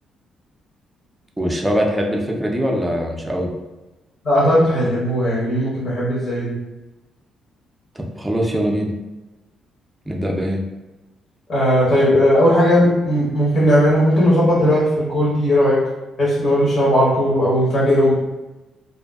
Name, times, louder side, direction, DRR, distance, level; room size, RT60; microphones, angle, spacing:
voice 1, 1.4-3.5 8.0-8.9 10.1-10.6, equal, 10° right, 0 dB, 0.4 m, -22 dB
voice 2, 4.2-6.5 11.5-15.8 16.2-18.1, equal, 50° left, -8 dB, 0.9 m, -17 dB
2.6 x 2.2 x 2.2 m, 1.1 s
cardioid pair, 90°, 0 cm